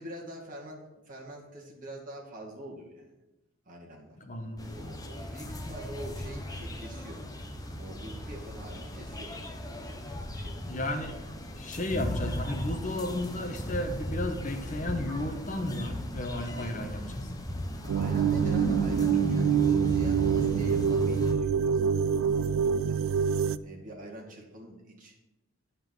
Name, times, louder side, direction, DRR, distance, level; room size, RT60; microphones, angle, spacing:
voice 1, 0.0-3.1 3.7-4.2 4.7-7.2 7.8-9.8 10.3-10.7 16.6-16.9 17.8-23.3 23.6-25.2, right 1 dB, 40° right, -3 dB, 2.1 m, -45 dB
voice 2, 4.2-4.9 10.4-11.2 11.6-17.2, left 1 dB, 35° left, 4 dB, 1.1 m, -34 dB
sound 1, 4.6-21.3, equal, 15° left, 0.8 m, -36 dB
sound 2, 17.9-23.6, right 7 dB, 70° right, 0.3 m, -26 dB
9.2 x 5.8 x 6.9 m, 0.99 s
head